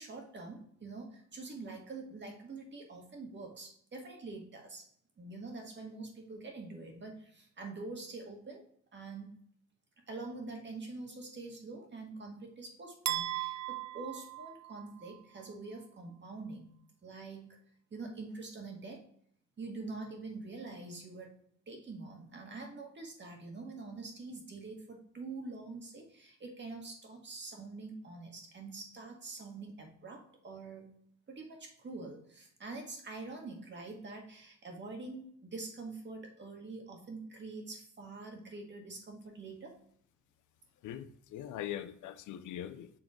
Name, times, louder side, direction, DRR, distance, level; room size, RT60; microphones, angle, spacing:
voice 1, 0.0-4.9 5.2-8.7 8.9-9.4 10.1-16.7 17.0-17.6 17.9-19.0 19.6-21.3 21.7-30.9 31.3-39.8, right 3 dB, 40° right, 2 dB, 1.7 m, -45 dB
sound 1, 13.1-15.2, right 15 dB, 65° right, 0.5 m, -37 dB
voice 2, 40.8-42.9, left 11 dB, 80° left, 12 dB, 0.6 m, -41 dB
7.0 x 3.6 x 3.7 m, 0.64 s
cardioid pair, 90°, 30 cm